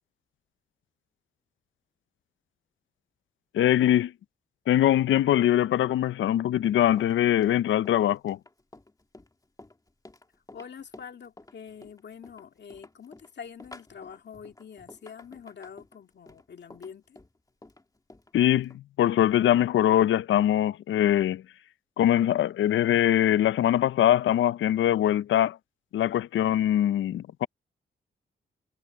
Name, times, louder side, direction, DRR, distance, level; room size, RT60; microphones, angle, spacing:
voice 1, 3.5-4.1 4.7-8.4 18.3-21.4 22.0-25.6 25.9-27.5, left 11 dB, 85° left, 0.5 m, -22 dB
Run, 6.6-18.8, left 2 dB, 20° left, 2.3 m, -51 dB
voice 2, 10.5-17.2, left 7 dB, 65° left, 2.1 m, -45 dB
cardioid pair, 65°, 20 cm